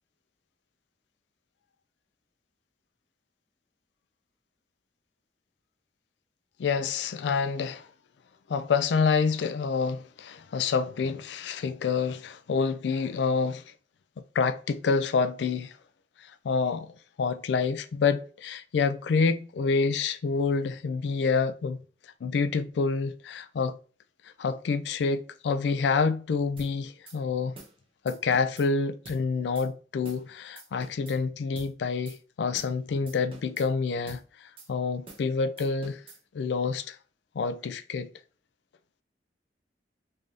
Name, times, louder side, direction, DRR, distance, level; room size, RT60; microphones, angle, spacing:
voice 1, 6.6-7.9 8.5-13.6 14.3-15.8 16.2-21.8 22.2-23.8 24.4-27.6 28.0-34.2 34.7-36.0 36.3-37.0 37.4-38.1, left 5 dB, 70° left, 0.3 m, -27 dB
sound 1, 26.6-26.7 27.1-27.2 27.6-27.8 28.1-28.7 29.1-29.2 29.6-29.7 30.0-30.3 30.6-31.2 31.6-31.7 32.1-32.2 32.5-32.8 33.1-33.7 34.1-34.2 34.6-34.7 35.1-35.3 35.6-36.2, right 3 dB, 30° right, 0.9 m, -48 dB
3.6 x 2.6 x 3.2 m
head